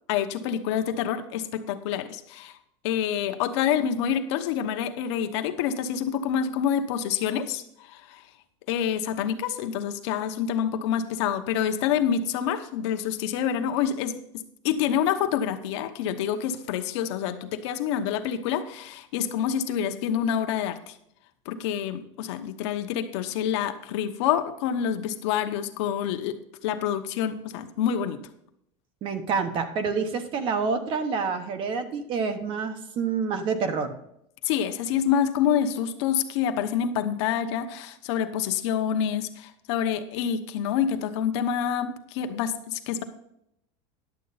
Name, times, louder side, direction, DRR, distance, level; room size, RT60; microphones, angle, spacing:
voice 1, 0.1-2.6 2.8-8.3 8.7-14.1 14.6-21.0 21.4-26.3 26.6-28.2 34.4-43.0, left 8 dB, 70° left, 8 dB, 1.0 m, -27 dB
voice 2, 29.0-33.9, right 5 dB, 35° right, 8 dB, 1.0 m, -28 dB
11.0 x 7.8 x 4.1 m, 0.76 s
supercardioid pair, 165°, 15 cm